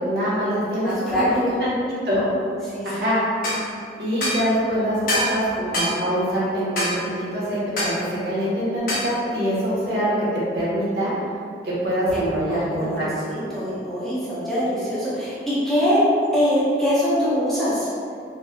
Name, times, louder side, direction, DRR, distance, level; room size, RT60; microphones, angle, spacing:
voice 1, 0.0-2.2 2.8-3.2 4.0-7.9 8.2-10.1 10.5-11.1 11.6-13.0, equal, 60° right, -9 dB, 1.2 m, -24 dB
voice 2, 0.8-1.2 2.7-3.1 12.4-13.0 13.3-16.0 16.3-17.9, equal, ahead, -12 dB, 0.8 m, -23 dB
sound 1, 3.4-3.6 4.2-4.4 5.1-5.3 5.7-6.0 6.8-7.0 7.8-8.0 8.9-9.1, left 1 dB, 50° left, 0.8 m, -24 dB
4.3 x 3.0 x 2.3 m, 2.4 s
head